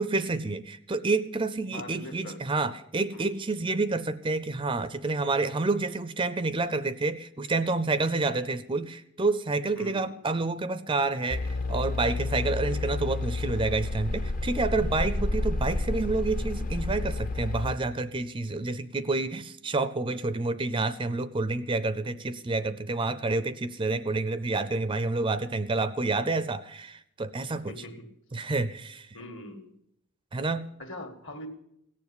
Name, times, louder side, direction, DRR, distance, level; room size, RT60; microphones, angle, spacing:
voice 1, 0.0-27.7 28.3-29.2 30.3-30.7, right 3 dB, 20° right, 13 dB, 0.5 m, -29 dB
voice 2, 1.7-2.7 3.1-3.3 9.8-10.3 27.7-28.1 29.1-29.7 30.8-31.5, left 1 dB, 55° left, 6 dB, 2.0 m, -42 dB
sound 1, 11.3-17.7, left 2 dB, 40° left, 0.8 m, -30 dB
17.0 x 7.2 x 9.8 m, 0.76 s
head